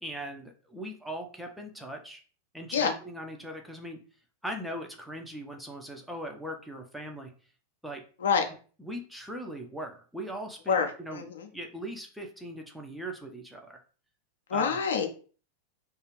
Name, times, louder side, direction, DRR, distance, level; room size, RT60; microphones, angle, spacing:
voice 1, 0.0-2.2 2.5-4.0 4.4-7.3 7.8-8.0 8.8-11.2 11.5-13.8 14.5-14.8, right 1 dB, 5° right, 2 dB, 0.5 m, -39 dB
voice 2, 10.7-11.5 14.5-15.1, left 6 dB, 65° left, 5 dB, 0.5 m, -27 dB
2.4 x 2.4 x 3.1 m, 0.39 s
figure-of-eight pair, 90°, 0 cm